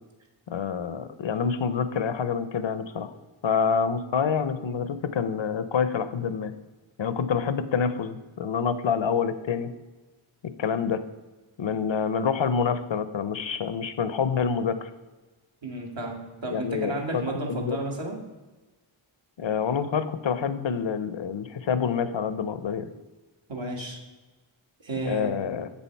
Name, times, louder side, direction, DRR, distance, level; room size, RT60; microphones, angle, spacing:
voice 1, 0.5-3.1 3.4-6.5 7.0-9.7 10.4-11.0 11.6-14.9 16.5-17.2 17.5-17.8 19.4-22.9 25.1-25.7, left 6 dB, 65° left, 12 dB, 0.6 m, -27 dB
voice 2, 15.6-18.2 23.5-24.0 24.8-25.6, right 2 dB, 60° right, 0 dB, 1.7 m, -33 dB
7.5 x 7.0 x 4.5 m, 1.2 s
wide cardioid pair, 70°, 50 cm